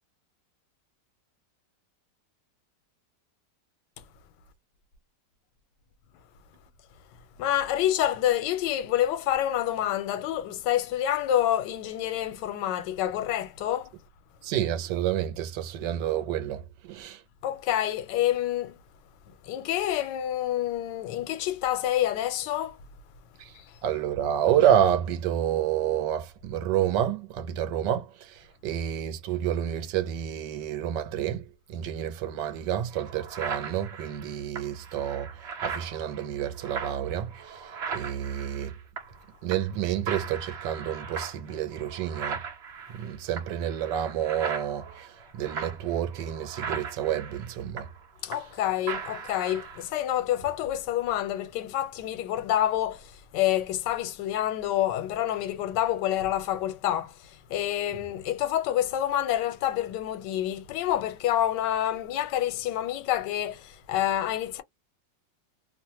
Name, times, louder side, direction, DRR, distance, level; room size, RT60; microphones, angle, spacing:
voice 1, 7.4-13.9 17.4-18.8 19.4-22.8 23.5-23.8 48.2-64.6, left 12 dB, 80° left, 1.2 m, -28 dB
voice 2, 14.4-16.6 16.9-17.2 23.8-31.4 31.7-35.3 35.6-37.6 37.9-38.7 39.4-42.4 42.9-47.8, right 10 dB, 85° right, 1.2 m, -29 dB
sound 1, 32.4-32.5 32.9-39.2 39.5-39.8 40.1-48.6 48.9-49.9, right 6 dB, 55° right, 0.8 m, -38 dB
3.0 x 2.1 x 2.7 m
omnidirectional pair, 1.9 m